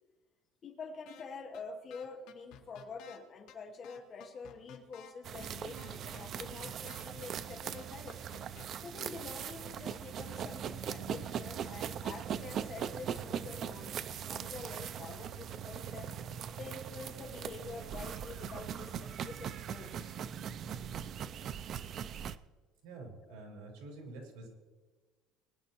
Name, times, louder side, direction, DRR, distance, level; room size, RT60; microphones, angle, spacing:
voice 1, 0.6-8.2 8.8-16.1 16.6-20.1, left 4 dB, 30° left, 5 dB, 1.1 m, -47 dB
sound 1, 1.1-1.2 1.5-1.6 1.9-3.2 3.5-3.6 3.8-5.1 5.4-5.5 5.8-7.0 7.3-7.4 7.7-8.6, left 10 dB, 60° left, 1.7 m, -53 dB
sound 2, 5.2-22.4, right 8 dB, 35° right, 0.4 m, -40 dB
voice 2, 22.8-24.5, right 2 dB, 80° right, 0 dB, 4.4 m, -47 dB
21.0 x 10.5 x 3.0 m, 1.3 s
cardioid pair, 170°, 0 cm